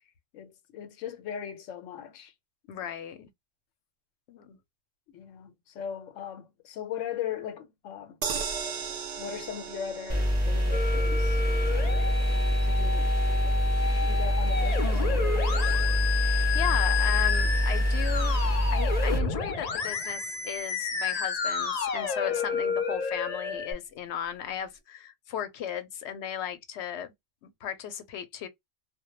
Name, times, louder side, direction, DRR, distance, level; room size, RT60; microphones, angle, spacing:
voice 1, 0.3-2.3 2.7-2.9 5.1-8.2 9.2-12.0 12.6-13.6 14.0-16.0, left 9 dB, 90° left, 1.0 m, -39 dB
voice 2, 2.7-3.3 4.3-4.6 16.5-18.4 18.7-27.1 27.4-28.5, left 9 dB, 70° left, 0.8 m, -36 dB
sound 1, 8.2-20.4 20.8-20.9 21.2-21.3, right 6 dB, 85° right, 0.3 m, -41 dB
sound 2, 10.1-19.2, equal, 15° right, 0.8 m, -25 dB
Musical instrument, 10.7-23.7, left 6 dB, 50° left, 0.5 m, -31 dB
2.2 x 2.1 x 2.9 m
omnidirectional pair, 1.3 m